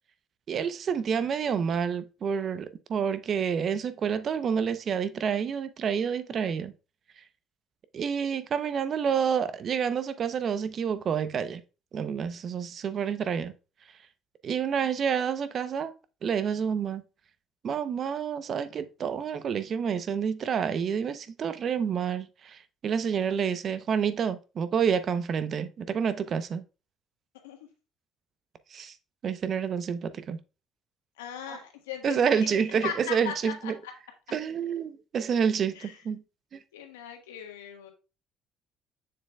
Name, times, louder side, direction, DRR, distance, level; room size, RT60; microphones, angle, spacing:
voice 1, 0.5-6.7 7.9-11.6 11.9-13.5 14.4-15.9 16.2-17.0 17.6-26.6 28.7-28.9 29.2-30.4 31.5-31.6 32.0-33.7 34.3-36.2 36.5-36.6, right 7 dB, 50° right, 0.7 m, -28 dB
voice 2, 14.8-15.1 27.4-27.6 31.2-32.5 32.8-33.9 35.7-36.0 36.7-37.9, left 9 dB, 85° left, 1.3 m, -39 dB
7.1 x 6.7 x 2.3 m
hypercardioid pair, 55°, 0 cm